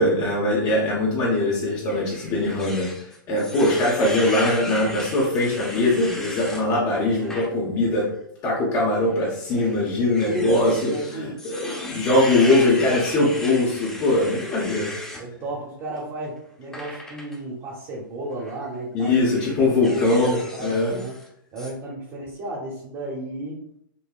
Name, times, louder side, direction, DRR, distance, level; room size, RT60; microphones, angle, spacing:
voice 1, 0.0-8.0 8.4-14.9 18.9-21.0, left 2 dB, 30° left, -4 dB, 0.9 m, -21 dB
sound 1, 1.8-6.6 7.1-7.5 7.9-8.0 9.1-15.2 16.7-17.4 18.3-18.6 19.0-21.3 21.6-21.7, left 1 dB, 5° left, 0.8 m, -36 dB
voice 2, 10.3-11.3 15.2-19.5 19.8-21.2 21.5-23.6, right 1 dB, 30° right, -5 dB, 1.0 m, -33 dB
5.4 x 2.1 x 2.4 m, 0.70 s
hypercardioid pair, 120°, 12 cm